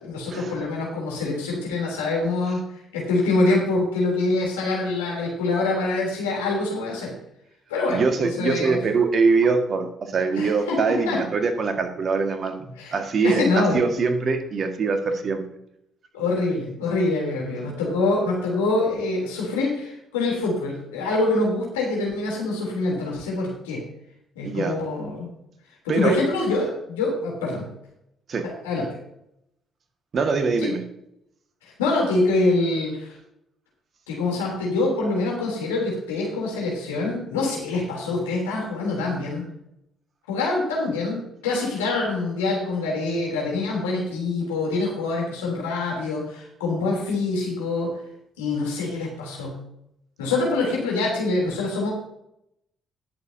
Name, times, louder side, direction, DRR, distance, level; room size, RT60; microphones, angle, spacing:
voice 1, 0.0-2.7 2.9-7.1 7.7-8.8 10.4-10.8 11.0-11.2 12.8-12.9 13.2-13.8 16.1-23.8 24.3-25.3 25.8-27.7 28.6-28.9 30.6-30.7 31.6-33.1 34.1-39.5 40.3-47.9 48.4-49.5 50.2-51.9, left 2 dB, 75° left, -2 dB, 3.2 m, -25 dB
voice 2, 7.9-15.4 24.4-24.8 25.9-26.2 28.3-28.4 30.1-30.8, right 4 dB, 45° right, 6 dB, 1.7 m, -23 dB
19.0 x 7.0 x 2.8 m, 0.78 s
figure-of-eight pair, 45°, 0 cm